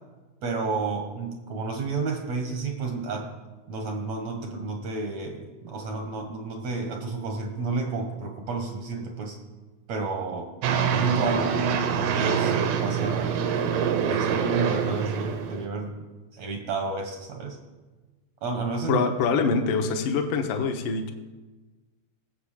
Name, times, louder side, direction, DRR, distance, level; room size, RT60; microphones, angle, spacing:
voice 1, 0.4-3.3 3.7-9.4 9.9-10.5 10.9-13.4 14.1-16.0 16.3-17.6 18.4-19.0, right 3 dB, 65° right, 3 dB, 1.7 m, -31 dB
sound 1, 10.6-15.7, right 7 dB, 85° right, 3.2 m, -25 dB
voice 2, 18.9-21.1, left 5 dB, 65° left, 4 dB, 2.4 m, -24 dB
19.5 x 8.0 x 6.5 m, 1.3 s
omnidirectional pair, 4.8 m